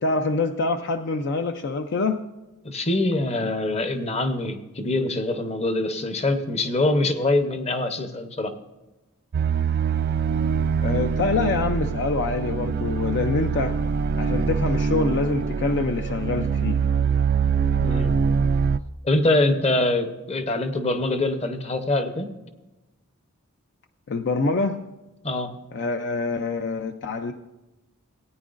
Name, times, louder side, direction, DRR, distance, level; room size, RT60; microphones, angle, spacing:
voice 1, 0.0-2.2 10.8-13.8 14.1-16.8 24.1-24.9 25.7-27.3, left 3 dB, 55° left, 6 dB, 0.5 m, -25 dB
voice 2, 2.6-8.5 17.8-18.1 19.0-22.3 25.2-25.5, left 2 dB, 30° left, 8 dB, 0.9 m, -24 dB
sound 1, 9.3-18.8, right 6 dB, 45° right, 0.3 m, -24 dB
18.0 x 9.4 x 2.5 m, 1.0 s
head